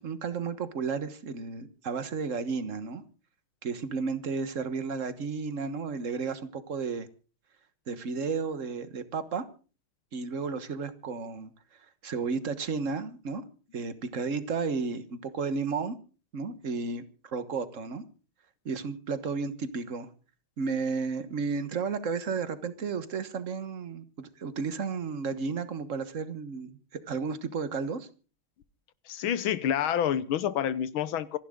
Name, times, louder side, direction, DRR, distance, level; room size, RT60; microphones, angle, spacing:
voice 1, 0.0-3.0 3.6-7.1 7.9-9.4 10.1-11.5 12.0-13.4 13.7-16.0 16.3-18.0 18.6-20.1 20.6-28.1, right 5 dB, 40° right, 1.5 m, -33 dB
voice 2, 29.1-31.4, left 9 dB, 75° left, 1.7 m, -28 dB
26.5 x 11.5 x 3.8 m
omnidirectional pair, 2.3 m